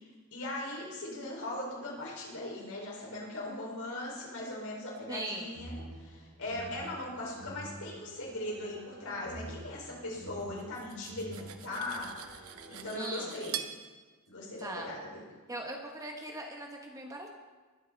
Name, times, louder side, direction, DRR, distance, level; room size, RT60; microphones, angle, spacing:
voice 1, 0.3-13.6 14.3-15.2, left 1 dB, 75° left, -3 dB, 4.9 m, -39 dB
voice 2, 5.1-5.5 12.9-13.4 14.6-14.9 15.5-17.3, right 1 dB, 15° right, 1 dB, 1.3 m, -40 dB
sound 1, 5.5-12.9, right 1 dB, 90° right, 1.7 m, -48 dB
Cutlery silverware, 10.6-13.8, right 9 dB, 70° right, 0.9 m, -43 dB
20.0 x 8.7 x 4.0 m, 1.4 s
head